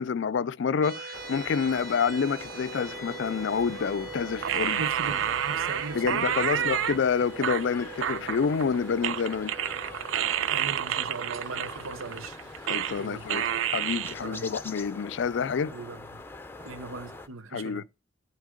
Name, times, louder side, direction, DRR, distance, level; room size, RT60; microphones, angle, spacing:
voice 1, 0.0-4.8 5.9-9.5 12.7-15.7 17.5-17.8, left 6 dB, 60° left, 0.4 m, -28 dB
sound 1, 0.8-12.0, right 4 dB, 45° right, 1.7 m, -42 dB
sound 2, 1.1-17.3, left 2 dB, 10° left, 0.6 m, -44 dB
sound 3, 4.4-7.0 7.4-8.7 9.0-13.0 13.3-14.1, right 10 dB, 65° right, 0.4 m, -29 dB
voice 2, 4.8-6.8 10.5-12.4 13.0-13.3 14.2-14.5 15.7-16.0 16.6-17.8, right 3 dB, 85° right, 0.8 m, -39 dB
12.0 x 4.5 x 5.0 m
head